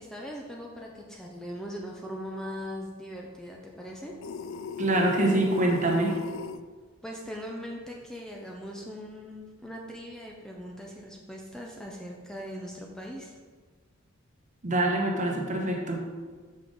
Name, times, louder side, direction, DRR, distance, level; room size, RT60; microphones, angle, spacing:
voice 1, 0.0-4.1 7.0-13.3, equal, 5° left, -1 dB, 0.6 m, -40 dB
sound 1, 4.2-6.6, left 5 dB, 75° left, 0.3 m, -38 dB
voice 2, 4.8-6.2 14.6-16.0, right 1 dB, 40° right, 1 dB, 1.1 m, -25 dB
6.4 x 5.6 x 3.9 m, 1.5 s
head